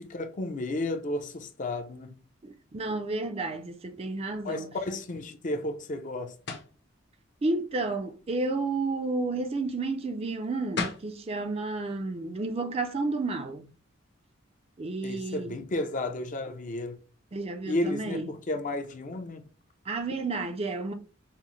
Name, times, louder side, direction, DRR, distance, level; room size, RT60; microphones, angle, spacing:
voice 1, 0.0-2.2 4.4-6.4 15.0-17.0 17.7-19.5, left 2 dB, 40° left, 0.5 m, -32 dB
voice 2, 2.4-4.7 7.4-13.7 14.8-15.6 17.3-18.3 19.9-20.9, right 3 dB, 30° right, 0.4 m, -31 dB
sound 1, 6.5-6.8 10.4-10.5 10.8-11.1, left 4 dB, 60° left, 0.8 m, -33 dB
5.6 x 2.0 x 3.1 m
head